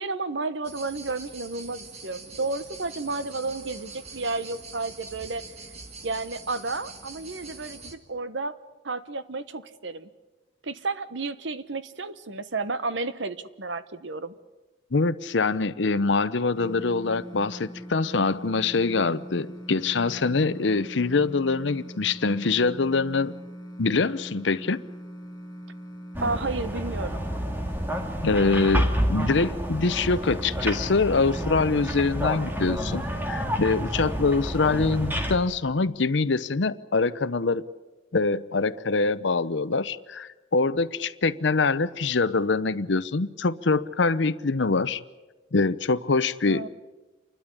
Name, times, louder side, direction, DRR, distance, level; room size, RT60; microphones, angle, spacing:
voice 1, 0.0-5.4 6.0-8.6 8.8-10.1 10.6-14.3 26.2-27.3 46.4-46.7, right 3 dB, 75° right, 13 dB, 1.1 m, -32 dB
sound 1, 0.6-8.0, right 3 dB, 35° right, 1.9 m, -44 dB
voice 2, 14.9-23.3 23.8-24.8 28.2-37.6 38.1-45.0 45.5-46.7, left 3 dB, 75° left, 13 dB, 0.8 m, -24 dB
sound 2, 16.5-33.4, equal, 20° left, 1.9 m, -42 dB
sound 3, 26.1-35.4, equal, 10° right, 1.9 m, -29 dB
28.5 x 12.5 x 10.0 m, 1.2 s
head